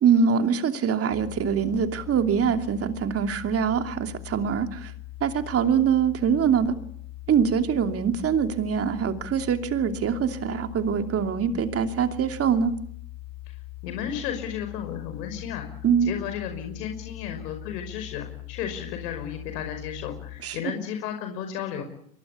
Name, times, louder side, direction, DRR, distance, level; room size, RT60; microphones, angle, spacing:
voice 1, 0.0-4.9 5.2-6.8 7.3-12.7 15.8-16.1 20.4-20.6, right 7 dB, 30° right, 7 dB, 2.9 m, -23 dB
sound 1, 1.1-20.4, left 17 dB, 55° left, 6.6 m, -41 dB
voice 2, 13.8-15.7 16.0-21.8, left 8 dB, 75° left, 5 dB, 5.7 m, -33 dB
23.5 x 23.5 x 8.5 m, 0.69 s
supercardioid pair, 120°, 49 cm